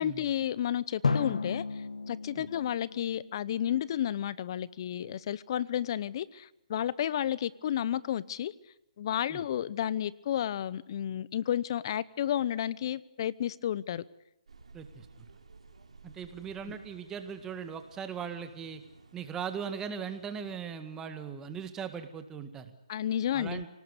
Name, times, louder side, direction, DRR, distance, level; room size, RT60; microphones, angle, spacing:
voice 1, 0.0-8.5 9.0-14.0 22.9-23.6, left 10 dB, 45° left, 0.8 m, -32 dB
Drum, 1.0-3.9, left 4 dB, 85° left, 1.4 m, -33 dB
sound 1, 14.5-20.7, right 4 dB, 90° right, 3.5 m, -56 dB
voice 2, 14.7-15.1 16.0-18.8 19.1-22.8 23.3-23.7, right 7 dB, 15° right, 1.8 m, -39 dB
27.0 x 19.0 x 8.3 m
hypercardioid pair, 150°, 3 cm